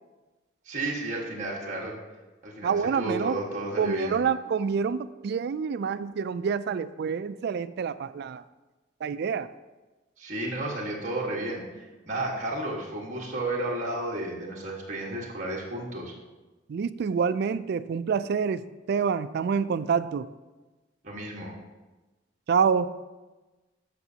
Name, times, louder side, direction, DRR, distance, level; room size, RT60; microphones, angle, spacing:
voice 1, 0.6-1.9 2.4-4.2 10.2-16.1 21.0-21.5, right 1 dB, 40° right, -4 dB, 1.5 m, -32 dB
voice 2, 2.6-3.3 3.8-8.4 9.0-9.5 16.7-20.3 22.5-22.9, right 6 dB, 55° right, 13 dB, 0.3 m, -27 dB
13.0 x 5.9 x 2.8 m, 1.2 s
head